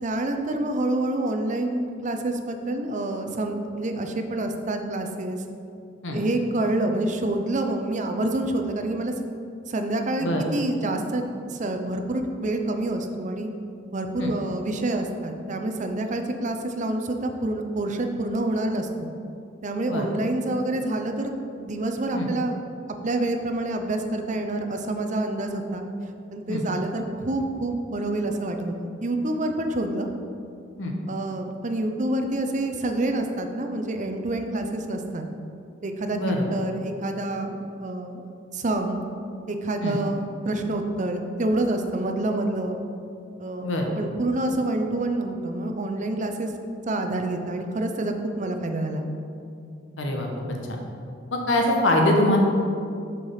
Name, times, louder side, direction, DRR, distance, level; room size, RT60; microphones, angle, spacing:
voice 1, 0.0-5.4 6.1-9.1 9.7-11.2 11.5-13.5 13.9-19.1 19.6-21.3 21.6-22.6 23.0-25.8 26.3-30.1 31.1-35.3 35.8-39.0 39.5-42.8 43.4-46.5 46.9-49.1, right 2 dB, 40° right, 5 dB, 0.6 m, -27 dB
voice 2, 36.1-36.5 39.8-40.0 43.6-43.9 50.0-50.8 51.3-52.4, left 1 dB, 70° left, 1 dB, 1.1 m, -24 dB
6.8 x 4.9 x 5.6 m, 2.5 s
head